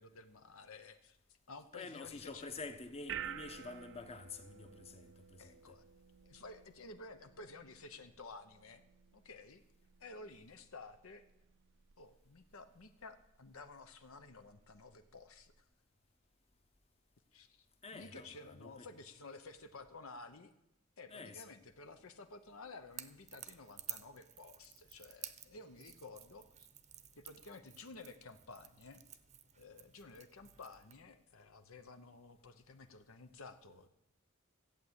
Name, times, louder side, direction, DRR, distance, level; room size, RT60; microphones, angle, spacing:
voice 1, 0.0-2.5 5.4-5.8 6.2-8.8 9.1-9.6 10.0-11.3 12.0-15.7 17.3-17.7 17.9-20.5 21.0-26.7 27.2-29.0 29.6-33.9, left 3 dB, 75° left, 0.9 m, -53 dB
voice 2, 1.7-5.8 17.8-18.9 21.1-21.4, left 3 dB, 30° left, 1.0 m, -48 dB
sound 1, 2.2-15.6, right 9 dB, 60° right, 0.5 m, -53 dB
Crackle / Crack, 22.9-31.0, right 10 dB, 30° right, 0.7 m, -52 dB
14.5 x 8.5 x 8.0 m
head